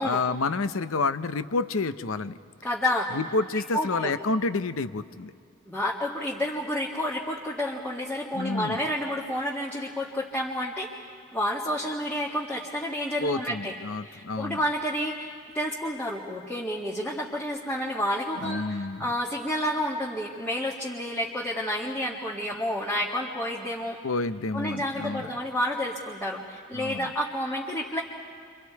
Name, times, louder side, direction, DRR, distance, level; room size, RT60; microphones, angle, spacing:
voice 1, 0.0-2.4 3.1-5.3 8.3-8.8 13.2-14.6 18.4-19.1 24.0-25.3 26.7-27.1, left 3 dB, 75° left, 12 dB, 0.8 m, -29 dB
voice 2, 2.6-3.2 3.7-4.1 5.7-11.0 11.3-13.7 14.0-24.0 24.5-28.0, left 1 dB, 10° left, -6 dB, 1.8 m, -30 dB
29.0 x 26.0 x 4.7 m, 2.3 s
head